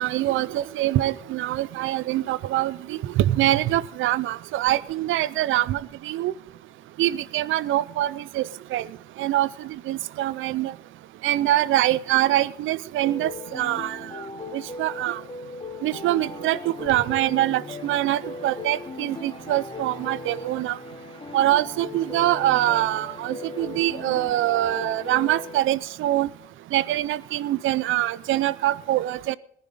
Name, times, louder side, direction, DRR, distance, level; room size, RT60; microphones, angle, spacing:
voice 1, 0.0-6.3 7.0-8.9 9.2-9.5 9.9-10.7 11.2-14.0 14.5-15.2 15.8-20.8 21.3-26.3 26.7-29.4, right 14 dB, 80° right, 19 dB, 0.5 m, -24 dB
sound 1, 13.0-25.6, left 3 dB, 25° left, 1.2 m, -38 dB
18.5 x 10.5 x 3.9 m, 0.73 s
cardioid pair, 90°, 20 cm